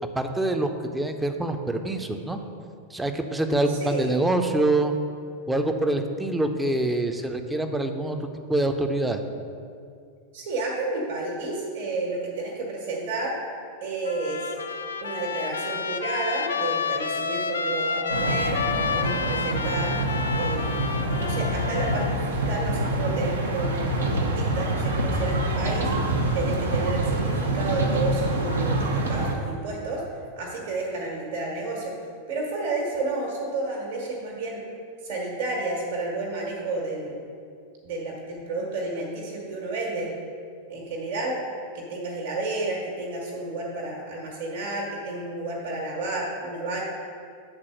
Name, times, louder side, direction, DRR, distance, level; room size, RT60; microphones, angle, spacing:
voice 1, 0.1-2.4 2.9-4.9 5.5-8.2 8.5-9.2, right 2 dB, 5° right, 6 dB, 0.5 m, -25 dB
voice 2, 3.7-4.1 10.3-13.3 13.8-14.5 15.0-18.6 18.9-19.9 20.4-20.7 21.2-25.9 26.3-30.0 30.4-31.9 32.3-34.6 35.0-37.2 37.8-40.1 40.7-41.4 41.7-46.8, right 2 dB, 55° right, -2 dB, 1.5 m, -31 dB
Trumpet, 14.1-22.2, left 5 dB, 70° left, 0.4 m, -30 dB
sound 1, 18.1-29.4, right 1 dB, 70° right, 0.8 m, -26 dB
7.4 x 4.0 x 6.3 m, 2.3 s
figure-of-eight pair, 90°, 0 cm